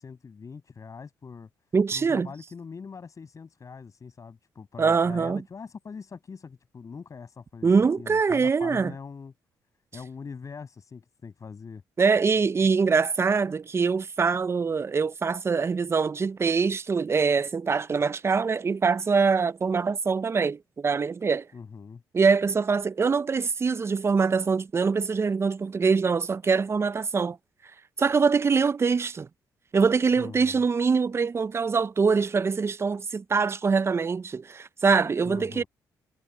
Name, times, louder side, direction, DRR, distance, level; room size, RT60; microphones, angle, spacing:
voice 1, 0.0-1.5 1.9-9.3 9.9-11.8 21.5-22.0 30.2-30.6 35.2-35.7, left 5 dB, 45° left, 7.7 m, -42 dB
voice 2, 1.7-2.3 4.8-5.4 7.6-8.9 12.0-21.5 22.1-27.4 28.0-29.3 29.7-35.6, right 5 dB, 35° right, 0.5 m, -24 dB
supercardioid pair, 65°, 8 cm